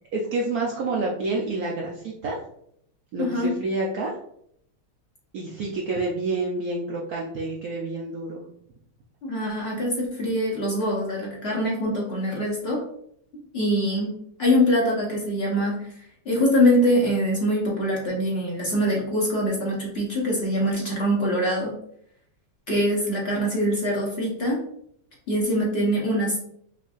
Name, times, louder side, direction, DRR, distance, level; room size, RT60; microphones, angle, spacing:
voice 1, 0.1-2.4 3.1-4.1 5.3-8.4, right 2 dB, 75° right, -3 dB, 0.8 m, -28 dB
voice 2, 3.2-3.5 9.2-12.8 13.5-15.9 16.2-21.8 22.7-24.6 25.3-26.4, equal, 50° left, -4 dB, 0.8 m, -23 dB
5.2 x 2.5 x 2.4 m, 0.69 s
omnidirectional pair, 2.2 m